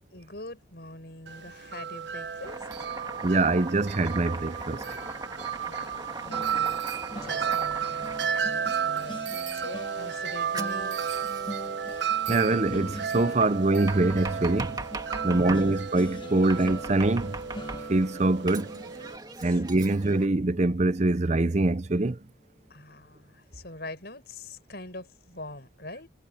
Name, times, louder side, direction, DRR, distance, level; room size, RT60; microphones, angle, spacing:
voice 1, 0.1-2.7 5.3-6.8 7.2-9.2 9.5-11.2 15.2-15.8 19.4-20.0 22.7-26.1, left 2 dB, 55° left, 7.6 m, -44 dB
Wind chime, 1.3-19.2, right 7 dB, 65° right, 1.2 m, -33 dB
Domestic sounds home sounds, 2.4-8.8 10.5-11.7 13.4-15.7 16.5-18.1 18.5-20.3, right 3 dB, 20° right, 2.6 m, -40 dB
voice 2, 3.2-4.8 12.3-14.8 15.2-17.3 17.9-18.7 19.4-22.2, right 2 dB, 35° right, 0.6 m, -24 dB
sound 1, 6.3-21.4 21.8-22.1 22.4-22.6, left 1 dB, 25° left, 1.2 m, -43 dB
head